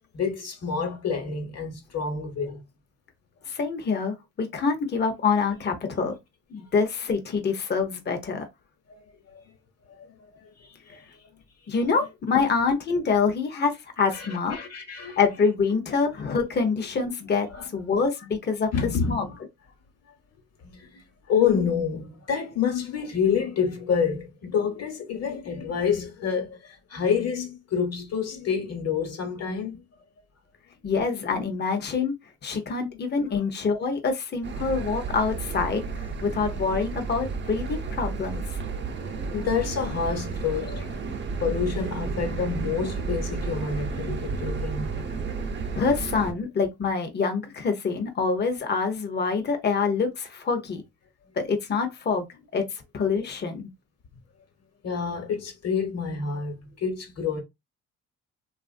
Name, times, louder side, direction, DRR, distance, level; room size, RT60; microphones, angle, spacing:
voice 1, 0.1-2.6 6.6-6.7 8.9-9.4 9.9-11.0 14.1-15.2 17.5-17.7 18.7-19.4 20.7-21.0 21.3-29.8 32.6-33.0 34.6-34.7 38.9-41.0 41.4-45.5 54.8-57.4, left 6 dB, 55° left, 1.2 m, -28 dB
voice 2, 3.5-6.2 6.5-8.5 11.7-14.6 15.2-18.7 19.1-19.2 30.8-32.1 32.4-38.6 45.7-50.8 51.4-52.3 52.5-53.6, left 5 dB, 35° left, 0.8 m, -26 dB
sound 1, 34.4-46.3, right 4 dB, 40° right, 0.7 m, -32 dB
3.0 x 2.5 x 2.4 m
cardioid pair, 90°, 30 cm